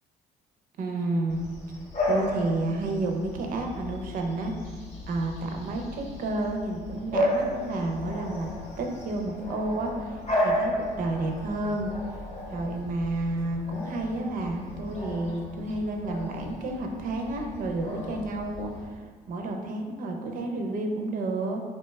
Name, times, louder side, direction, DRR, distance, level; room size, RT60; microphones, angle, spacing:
voice 1, 0.8-1.4 2.1-4.5 5.1-8.5 8.8-10.7 11.0-11.9 12.5-21.6, right 2 dB, 55° right, 2 dB, 0.5 m, -30 dB
Bark / Bird vocalization bird call bird song, 1.3-18.8, left 1 dB, 35° left, 0.7 m, -34 dB
sound 1, 3.8-16.5, left 1 dB, 75° left, 0.7 m, -51 dB
2.8 x 2.2 x 3.1 m, 1.5 s
cardioid pair, 110°, 17 cm